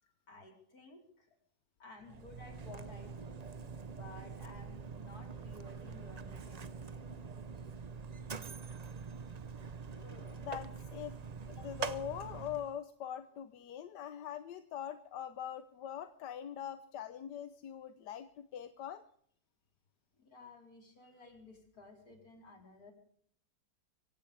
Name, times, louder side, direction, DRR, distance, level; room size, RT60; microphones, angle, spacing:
voice 1, 0.0-1.3 1.8-3.4 3.8-7.2 20.2-22.9, left 2 dB, 65° left, 2 dB, 4.7 m, -55 dB
Mechanisms, 2.0-12.8, right 5 dB, 45° right, 0.5 m, -45 dB
voice 2, 9.9-11.2 11.6-19.0, left 9 dB, 90° left, 10 dB, 1.5 m, -43 dB
25.0 x 16.0 x 3.4 m, 0.63 s
omnidirectional pair, 1.8 m